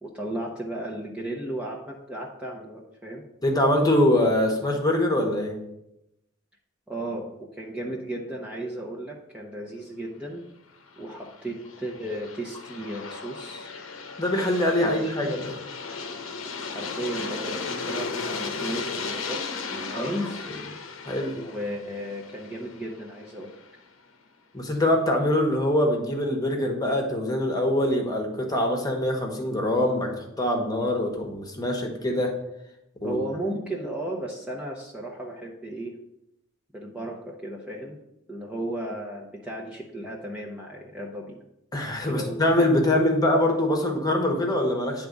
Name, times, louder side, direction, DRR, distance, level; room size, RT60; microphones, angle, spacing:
voice 1, 0.0-3.2 6.9-10.4 11.0-13.7 14.8-15.1 16.7-19.4 19.7-20.5 21.3-23.5 33.0-35.9 36.7-38.0 38.3-41.4 42.1-42.4, right 1 dB, 5° right, -3 dB, 0.8 m, -34 dB
voice 2, 3.4-5.6 14.2-15.6 19.9-20.6 21.0-21.4 24.5-32.3 33.0-33.2 41.7-45.1, left 1 dB, 20° left, 2 dB, 1.2 m, -24 dB
Aircraft, 10.9-23.7, left 4 dB, 80° left, 0.9 m, -36 dB
9.8 x 3.5 x 5.2 m, 0.85 s
head